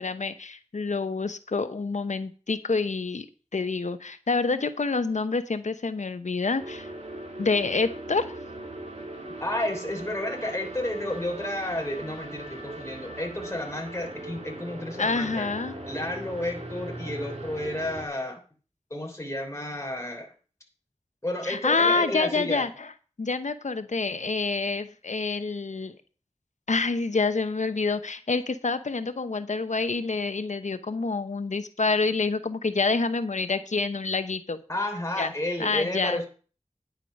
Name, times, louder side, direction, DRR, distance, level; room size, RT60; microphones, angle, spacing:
voice 1, 0.0-3.3 3.5-6.9 7.4-8.3 15.0-15.7 21.4-22.9 23.2-26.0 26.7-34.6 35.2-35.3 35.6-36.2, left 4 dB, 85° left, 11 dB, 0.9 m, -27 dB
sound 1, 6.6-18.1, right 1 dB, 65° right, 3.1 m, -39 dB
voice 2, 9.4-15.5 15.9-18.4 18.9-20.3 21.2-22.7 34.7-36.2, left 1 dB, 25° left, 1 dB, 3.3 m, -31 dB
10.5 x 8.1 x 5.3 m, 0.39 s
wide cardioid pair, 45°, 12 cm